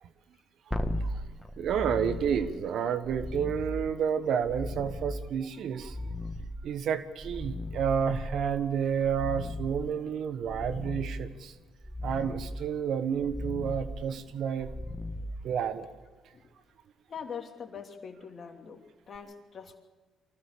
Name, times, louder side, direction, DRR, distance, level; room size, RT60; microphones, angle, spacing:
sound 1, 0.7-16.0 19.1-19.2, left 1 dB, 5° left, 1.7 m, -38 dB
voice 1, 1.6-6.0 6.6-11.5 12.0-14.7 15.4-15.9, right 7 dB, 65° right, 12 dB, 1.3 m, -30 dB
voice 2, 17.1-18.8 19.1-19.8, left 6 dB, 50° left, 4 dB, 3.0 m, -42 dB
24.0 x 16.5 x 6.9 m, 1.3 s
supercardioid pair, 60°, 0 cm